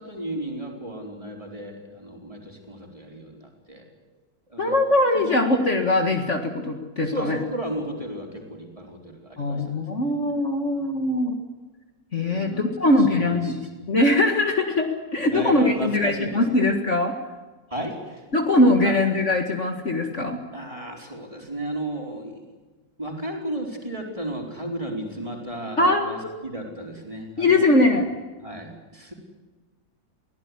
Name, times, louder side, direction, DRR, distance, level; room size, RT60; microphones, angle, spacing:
voice 1, 0.0-3.9 4.5-4.8 5.1-5.4 7.0-10.2 10.7-10.8 12.2-13.9 15.3-16.7 17.7-18.2 18.8-18.9 20.5-22.4 23.0-27.6 28.4-29.1, right 1 dB, 20° right, 1 dB, 4.8 m, -34 dB
voice 2, 4.6-7.4 9.4-11.4 12.1-13.5 13.9-17.1 18.3-20.4 25.8-26.4 27.4-28.1, left 2 dB, 40° left, 3 dB, 2.1 m, -21 dB
23.0 x 17.0 x 9.9 m, 1.3 s
omnidirectional pair, 1.9 m